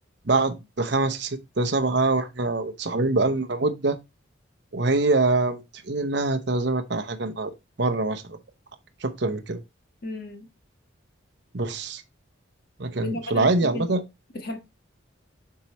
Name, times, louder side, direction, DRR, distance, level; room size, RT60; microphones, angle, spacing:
voice 1, 0.2-4.0 4.7-7.5 7.8-8.4 9.0-9.6 11.5-12.0 12.8-14.0, right 3 dB, 55° right, 0.8 m, -24 dB
voice 2, 10.0-10.5 13.0-13.9 14.3-14.6, left 1 dB, 45° left, 1.4 m, -34 dB
7.3 x 4.7 x 3.0 m
head